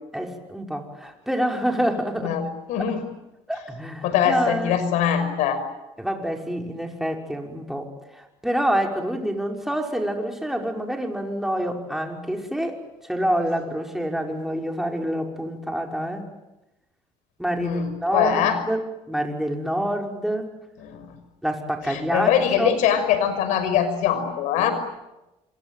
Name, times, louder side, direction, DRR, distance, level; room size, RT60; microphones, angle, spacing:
voice 1, 0.1-2.3 2.8-2.9 3.5-4.8 6.0-16.3 17.4-18.8 19.1-20.5 21.4-22.3 22.6-22.8, equal, 5° right, 2 dB, 5.7 m, -27 dB
voice 2, 2.2-3.0 4.0-5.6 17.6-18.6 20.8-21.1 21.9-24.7, left 9 dB, 75° left, 11 dB, 5.6 m, -22 dB
26.5 x 24.0 x 9.3 m, 0.99 s
supercardioid pair, 85°, 13 cm